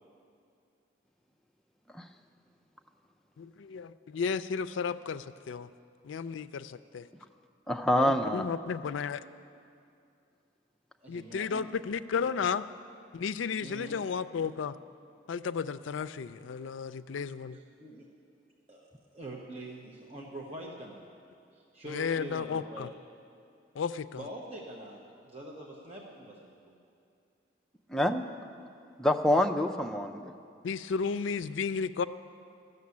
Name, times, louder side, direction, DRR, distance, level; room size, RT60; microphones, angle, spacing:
voice 1, 3.4-5.7 6.0-7.1 8.1-9.2 11.1-12.6 13.1-14.8 15.3-17.6 21.9-22.9 23.7-24.2 30.6-32.0, left 6 dB, 85° left, 12 dB, 0.4 m, -33 dB
voice 2, 7.7-8.4 27.9-28.2 29.0-30.3, left 1 dB, 5° left, 3 dB, 0.4 m, -26 dB
voice 3, 11.0-11.7 13.6-14.0 17.5-18.1 18.7-18.9 19.1-21.0 21.5-22.9 24.1-26.8, right 1 dB, 30° right, -2 dB, 0.9 m, -44 dB
12.5 x 6.7 x 9.5 m, 2.5 s
head